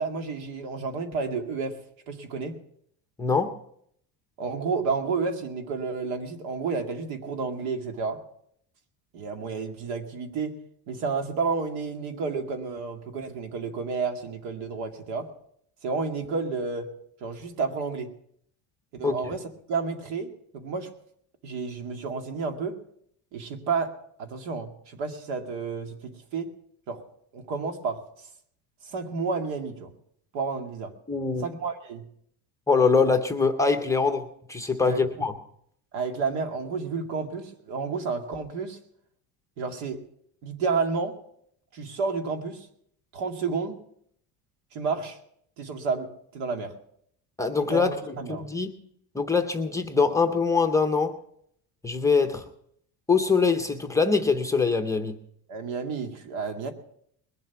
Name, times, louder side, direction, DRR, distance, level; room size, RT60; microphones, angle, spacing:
voice 1, 0.0-1.8 2.1-2.6 4.4-8.2 9.1-10.6 10.9-15.3 15.8-16.9 17.2-18.1 18.9-19.4 19.7-20.9 21.4-22.8 23.3-23.9 24.2-26.5 26.9-27.0 27.3-28.0 28.8-29.9 30.3-30.9 31.4-32.0 34.9-35.3 35.9-38.8 39.6-40.0 40.4-41.2 41.7-42.7 43.1-43.8 44.7-45.2 45.6-46.7 47.7-48.5 55.5-56.7, right 4 dB, 85° right, 5 dB, 2.2 m, -31 dB
voice 2, 3.2-3.6 19.0-19.2 31.1-31.5 32.7-35.3 47.4-47.9 48.3-48.7 49.1-51.2 51.8-52.5 53.1-55.2, left 4 dB, 10° left, 5 dB, 0.6 m, -23 dB
21.0 x 7.7 x 5.8 m, 0.68 s
cardioid pair, 175°, 41 cm